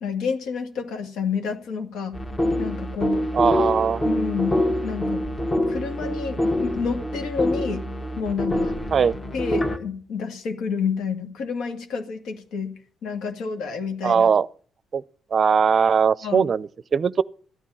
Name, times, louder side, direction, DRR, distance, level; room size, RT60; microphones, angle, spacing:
voice 1, 0.0-2.2 2.6-3.3 4.0-5.3 5.7-7.9 8.2-8.8 9.3-12.7 13.0-14.3 16.2-16.5, left 5 dB, 80° left, 2.1 m, -29 dB
sound 1, 2.1-9.8, left 1 dB, 25° left, 1.8 m, -25 dB
voice 2, 3.3-4.0 8.9-9.2 14.0-14.5 14.9-15.0 15.3-17.2, right 6 dB, 45° right, 0.5 m, -20 dB
14.0 x 10.0 x 5.5 m
cardioid pair, 90°, 0 cm